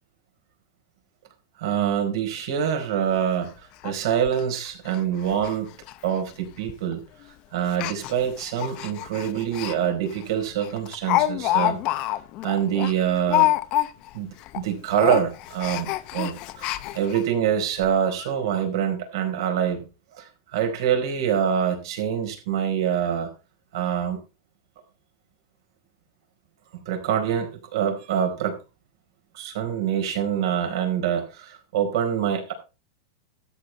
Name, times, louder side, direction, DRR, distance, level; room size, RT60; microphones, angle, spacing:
voice 1, 1.6-3.5 3.8-5.7 6.0-7.0 7.5-11.8 12.4-13.5 14.1-19.9 20.2-23.3 23.7-24.2 26.7-28.6 29.3-32.5, right 9 dB, 55° right, 5 dB, 4.5 m, -25 dB
Speech, 2.9-3.0 3.4-3.5 3.8-3.9 4.3-4.4 4.9-5.0 5.3-5.5 5.8-5.9 6.7-6.9 7.7-9.8 10.1-10.2 10.6-14.2 14.4-14.6 14.9-17.2 17.8-17.9 18.2-18.3, left 16 dB, 30° left, 0.8 m, -27 dB
13.0 x 8.1 x 4.2 m, 0.30 s
supercardioid pair, 175°, 3 cm